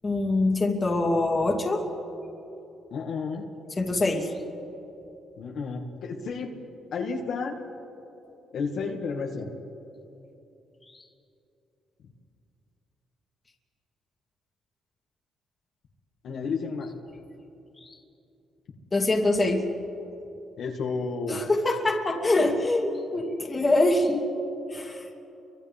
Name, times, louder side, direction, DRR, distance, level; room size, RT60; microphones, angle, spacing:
voice 1, 0.0-1.9 3.8-4.3 10.9-11.0 17.8-17.9 18.9-19.7 21.3-24.2 24.7-25.0, left 2 dB, 25° left, 1 dB, 2.6 m, -24 dB
voice 2, 2.9-3.5 5.4-6.6 6.9-7.6 8.5-9.5 16.2-16.9 20.6-21.5, left 4 dB, 70° left, 0 dB, 2.1 m, -31 dB
30.0 x 24.5 x 3.6 m, 2.9 s
cardioid pair, 90°, 0 cm